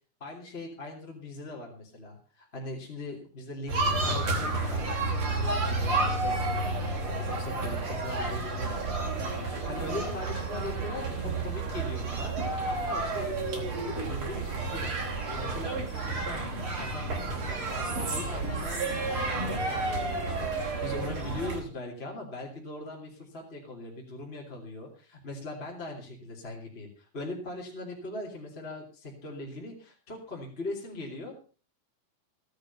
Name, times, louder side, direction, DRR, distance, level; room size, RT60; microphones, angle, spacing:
voice 1, 0.2-5.1 5.4-6.4 7.2-15.0 15.3-31.3, left 2 dB, 15° left, -2 dB, 3.1 m, -41 dB
sound 1, 3.7-21.6, right 3 dB, 35° right, 3.8 m, -31 dB
17.0 x 10.0 x 5.5 m, 0.39 s
omnidirectional pair, 4.4 m